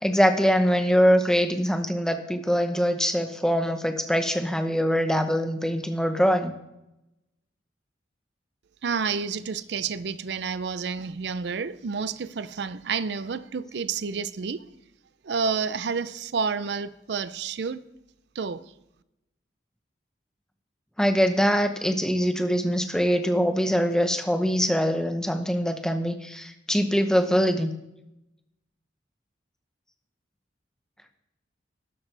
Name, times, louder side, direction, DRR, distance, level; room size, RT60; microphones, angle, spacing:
voice 1, 0.0-6.5 21.0-27.7, equal, 5° left, 0.9 m, -23 dB
voice 2, 8.8-14.7 15.2-17.9 18.4-18.6, right 5 dB, 65° right, 0.5 m, -30 dB
12.0 x 11.5 x 3.4 m
head